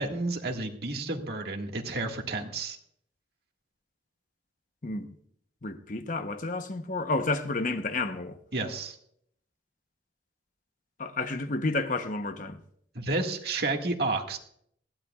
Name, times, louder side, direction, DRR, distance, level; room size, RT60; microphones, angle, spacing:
voice 1, 0.0-2.8 8.5-9.0 12.9-14.4, right 2 dB, 60° right, 1.8 m, -31 dB
voice 2, 4.8-5.1 5.6-8.4 11.0-12.6, left 3 dB, 45° left, 0.9 m, -31 dB
20.0 x 15.5 x 2.4 m
head